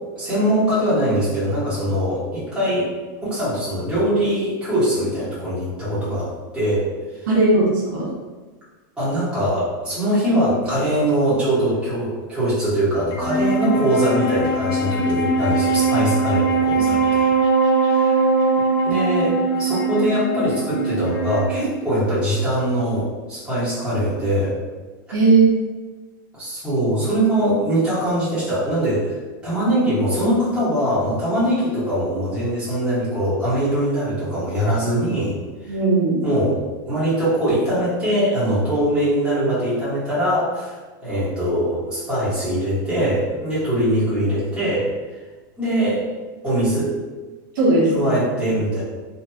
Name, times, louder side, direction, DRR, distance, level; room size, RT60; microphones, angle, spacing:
voice 1, 0.1-2.9 3.2-6.3 6.5-6.9 9.0-17.2 17.9-18.2 18.8-24.5 26.3-29.1 29.4-35.3 35.6-35.7 36.2-36.6 36.9-44.9 45.6-46.0 46.4-46.9 47.9-48.8, right 1 dB, 5° right, -12 dB, 1.3 m, -22 dB
voice 2, 7.3-7.6 7.9-8.1 14.9-15.3 16.8-16.9 25.1-25.4 35.7-36.2 47.5-48.1, right 3 dB, 65° right, -5 dB, 0.8 m, -17 dB
Wind instrument woodwind instrument, 13.1-22.6, right 3 dB, 35° left, 0.4 m, -21 dB
2.8 x 2.5 x 2.3 m, 1.3 s
supercardioid pair, 155°, 12 cm